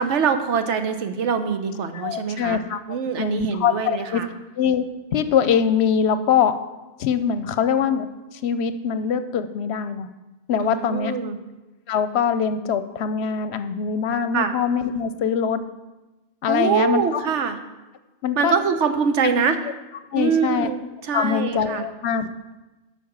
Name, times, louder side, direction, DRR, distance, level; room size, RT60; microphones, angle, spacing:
voice 1, 0.0-2.6 2.9-4.3 10.6-11.4 14.3-14.5 16.5-17.6 18.4-19.6 20.1-21.8, right 6 dB, 80° right, 8 dB, 1.1 m, -24 dB
voice 2, 1.9-2.8 3.2-4.2 4.6-6.6 7.0-8.1 8.3-10.1 10.5-11.1 11.9-15.6 16.4-17.2 18.2-18.5 19.2-19.3 20.1-20.7 21.1-22.3, left 7 dB, 70° left, 11 dB, 0.8 m, -23 dB
8.6 x 5.7 x 7.2 m, 1.1 s
omnidirectional pair, 1.2 m